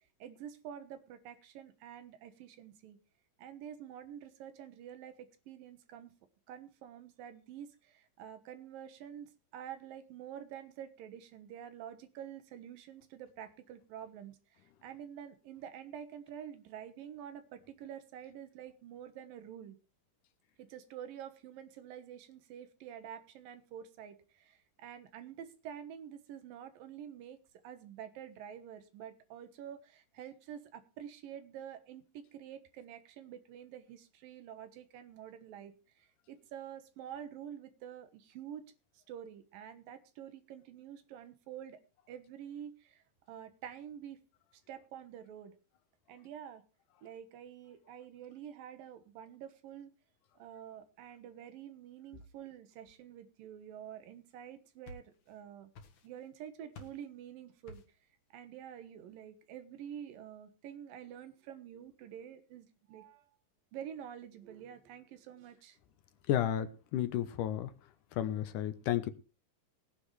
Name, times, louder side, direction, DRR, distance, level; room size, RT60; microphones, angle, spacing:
voice 1, 0.2-3.0 3.4-6.1 6.5-19.8 20.6-27.4 27.6-38.7 38.9-41.8 42.1-44.2 44.5-45.6 46.1-46.6 47.0-49.9 50.4-55.7 56.0-57.8 58.3-63.4 63.7-65.8, right 9 dB, 90° right, 3.0 m, -48 dB
sound 1, 54.5-55.4 55.7-56.3 56.7-57.1 57.7-58.1, left 2 dB, 60° left, 2.7 m, -52 dB
voice 2, 66.3-67.7 68.2-69.1, left 11 dB, 75° left, 2.4 m, -32 dB
19.5 x 9.9 x 3.2 m
omnidirectional pair, 3.9 m